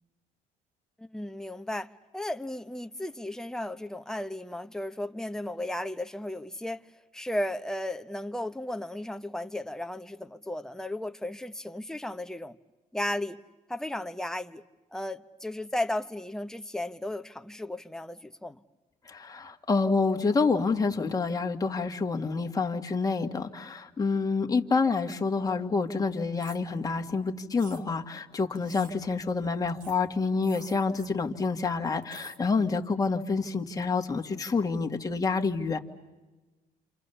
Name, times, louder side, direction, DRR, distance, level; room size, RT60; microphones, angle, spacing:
voice 1, 1.0-6.9 7.1-12.6 12.9-13.4 13.7-14.6 14.9-18.6, left 1 dB, 5° left, 0.9 m, -35 dB
voice 2, 19.1-35.8, left 4 dB, 20° left, 1.8 m, -28 dB
sound 1, 26.4-26.6 27.6-27.8 28.5-28.9 29.8-30.0 30.4-31.1 32.0-32.4, right 5 dB, 55° right, 2.4 m, -49 dB
28.0 x 28.0 x 7.0 m
cardioid pair, 110°, 17 cm